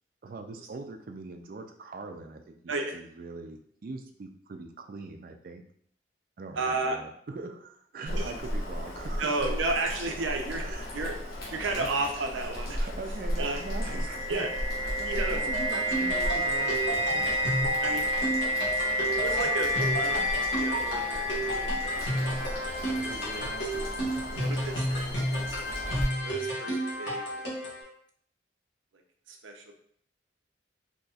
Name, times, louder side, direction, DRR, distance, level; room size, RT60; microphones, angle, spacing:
voice 1, 0.2-5.6 6.4-9.5 10.6-11.2 11.6-11.9 12.3-12.5 12.8-14.5 14.8-17.6 22.2-22.6 23.0-24.4, right 3 dB, 45° right, 6 dB, 0.4 m, -42 dB
voice 2, 6.6-7.0 8.1-8.3 9.2-10.7 10.9-11.2 11.5-12.8 13.4-13.6 14.3-14.5 15.1-15.5 17.8-18.5 19.1-20.2 20.5-22.4 22.8-23.5 24.4-25.7 26.2-27.6 29.3-29.7, right 3 dB, 90° right, 4 dB, 0.6 m, -33 dB
Boiling, 8.1-26.0, equal, 55° left, 1.1 m, -36 dB
sound 1, 13.3-23.1, left 1 dB, 90° left, 0.5 m, -30 dB
sound 2, 15.5-27.8, right 1 dB, 75° left, 1.4 m, -32 dB
4.0 x 2.8 x 2.3 m, 0.63 s
head